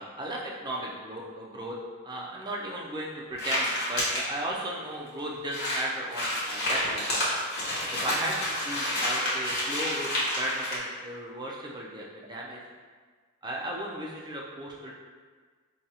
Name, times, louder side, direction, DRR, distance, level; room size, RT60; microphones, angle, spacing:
voice 1, 0.0-1.8 2.0-7.2 7.9-12.6 13.4-14.9, right 1 dB, 20° right, -3 dB, 0.4 m, -35 dB
sound 1, 3.4-4.2 4.9-5.0 5.2-5.3 5.5-10.8, left 1 dB, 50° left, 1.0 m, -29 dB
4.8 x 2.3 x 2.8 m, 1.5 s
head